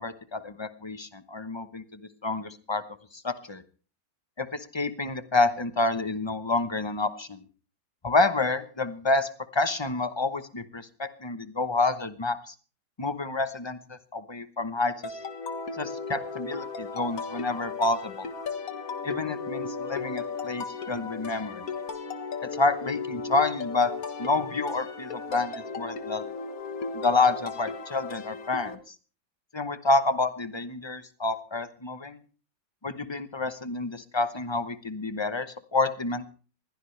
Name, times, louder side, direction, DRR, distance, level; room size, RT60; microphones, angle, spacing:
voice 1, 0.0-2.8 3.2-3.6 4.4-7.4 8.0-12.5 13.0-15.1 15.7-18.3 19.0-21.6 22.4-23.9 24.2-26.3 26.9-28.9 29.5-32.2 32.8-36.3, left 3 dB, 25° left, 12 dB, 0.6 m, -28 dB
sound 1, 15.0-28.8, left 5 dB, 50° left, 1.8 m, -36 dB
21.0 x 16.5 x 3.3 m, 0.38 s
omnidirectional pair, 2.0 m